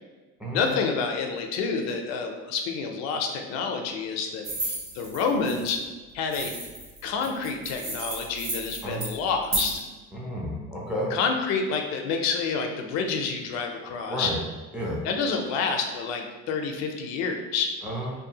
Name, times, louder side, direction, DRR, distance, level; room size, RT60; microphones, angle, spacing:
voice 1, 0.5-5.8 6.1-6.6 7.0-9.8 11.1-14.3 15.0-17.7, left 5 dB, 65° left, 4 dB, 0.4 m, -28 dB
sound 1, 4.4-5.7 6.3-9.8, right 2 dB, 35° right, 0.8 m, -33 dB
voice 2, 10.1-11.1 14.1-14.4 14.7-15.0 17.8-18.1, equal, 5° right, -4 dB, 0.4 m, -31 dB
2.6 x 2.3 x 2.7 m, 1.2 s
cardioid pair, 135°, 29 cm